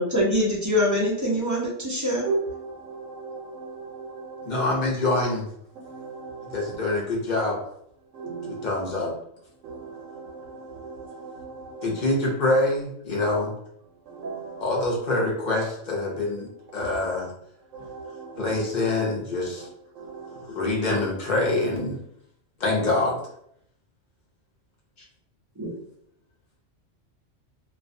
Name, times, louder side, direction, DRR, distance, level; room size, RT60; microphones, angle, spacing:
voice 1, 0.0-2.3 25.6-25.7, left 1 dB, 20° right, -5 dB, 0.5 m, -24 dB
voice 2, 2.3-4.8 5.8-6.8 8.1-8.9 9.6-12.1 14.1-14.9 16.8-17.1 17.7-18.7 19.6-19.7 19.9-20.5, right 4 dB, 80° right, 2 dB, 1.0 m, -36 dB
voice 3, 4.4-5.5 6.4-7.6 8.4-9.1 11.8-13.5 14.6-17.3 18.4-19.7 20.4-22.0 22.6-23.2, left 2 dB, 45° left, -2 dB, 0.7 m, -25 dB
2.4 x 2.2 x 2.5 m, 0.70 s
omnidirectional pair, 1.3 m